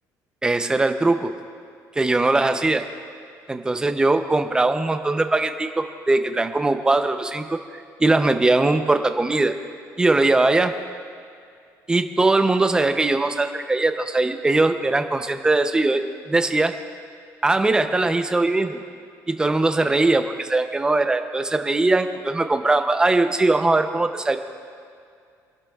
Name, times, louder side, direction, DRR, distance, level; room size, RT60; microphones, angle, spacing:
voice 1, 0.4-1.3 2.0-2.8 3.5-7.6 8.0-9.5 10.0-10.7 11.9-16.0 16.3-16.7 17.4-18.8 19.3-24.4, right 2 dB, 10° right, 7 dB, 0.6 m, -20 dB
29.0 x 11.5 x 2.4 m, 2.3 s
cardioid pair, 155°, 7 cm